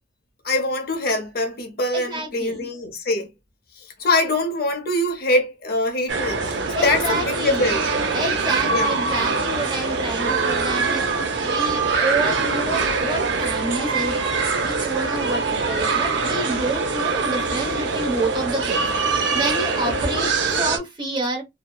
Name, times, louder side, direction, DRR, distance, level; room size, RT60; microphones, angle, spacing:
voice 1, 0.4-3.3 3.8-7.9 8.7-9.0, left 2 dB, 55° left, 0.7 m, -23 dB
voice 2, 1.9-2.7 6.7-7.7 8.1-11.0 11.4-14.2 14.6-18.9 19.3-21.4, right 2 dB, 25° right, 0.9 m, -28 dB
sound 1, 6.1-20.8, right 4 dB, 70° right, 0.6 m, -23 dB
2.7 x 2.0 x 2.3 m
head